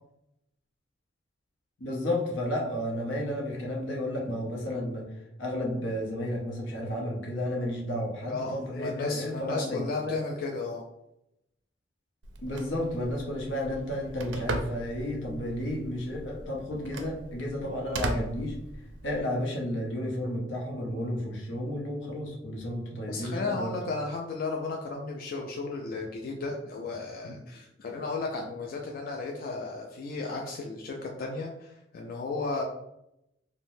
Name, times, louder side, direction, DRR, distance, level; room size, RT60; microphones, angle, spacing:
voice 1, 1.8-5.1 5.4-10.2 12.4-18.6 19.0-23.7, left 1 dB, 85° left, -1 dB, 0.8 m, -32 dB
voice 2, 8.3-10.8 23.1-32.6, left 3 dB, 50° left, 0 dB, 0.3 m, -34 dB
Telephone, 12.2-19.2, right 2 dB, 70° right, 0.4 m, -38 dB
3.3 x 2.1 x 2.6 m, 0.84 s
head